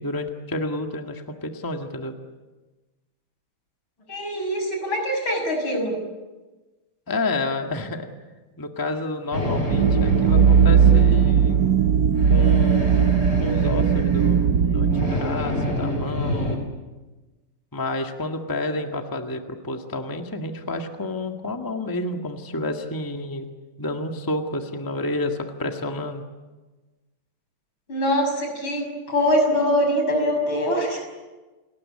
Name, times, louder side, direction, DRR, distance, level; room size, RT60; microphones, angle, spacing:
voice 1, 0.0-2.1 7.1-8.1 8.6-11.6 12.3-13.1 13.4-16.6 17.7-23.5 23.8-26.2, left 2 dB, 10° left, 4 dB, 1.6 m, -30 dB
voice 2, 4.1-6.0 27.9-31.1, equal, 75° left, 3 dB, 7.1 m, -23 dB
sound 1, 9.3-16.6, left 1 dB, 30° left, 4.9 m, -29 dB
sound 2, 9.7-15.1, right 7 dB, 55° right, 1.4 m, -18 dB
30.0 x 20.0 x 8.6 m, 1.2 s
omnidirectional pair, 2.3 m